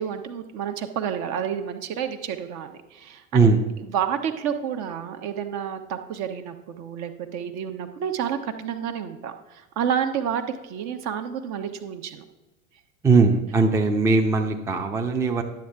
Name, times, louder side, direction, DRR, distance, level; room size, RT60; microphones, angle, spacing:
voice 1, 0.0-3.4 3.9-12.2, right 8 dB, 40° right, 7 dB, 0.9 m, -30 dB
voice 2, 13.0-15.4, right 4 dB, 5° right, 2 dB, 0.6 m, -19 dB
11.5 x 7.8 x 3.4 m, 1.1 s
figure-of-eight pair, 80°, 41 cm